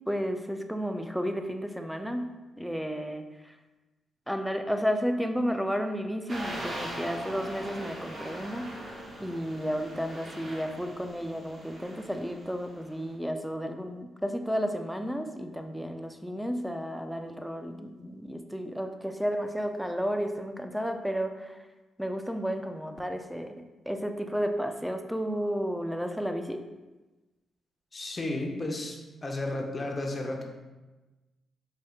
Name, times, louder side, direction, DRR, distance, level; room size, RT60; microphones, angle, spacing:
voice 1, 0.1-2.3 2.6-3.6 4.3-8.7 9.2-21.6 22.0-23.6 23.9-26.6, equal, ahead, 6 dB, 0.4 m, -32 dB
sound 1, 6.3-13.0, right 1 dB, 50° right, 0.9 m, -41 dB
voice 2, 27.9-30.4, left 2 dB, 35° left, 2 dB, 0.7 m, -33 dB
4.8 x 2.7 x 2.3 m, 1.1 s
hypercardioid pair, 45°, 0 cm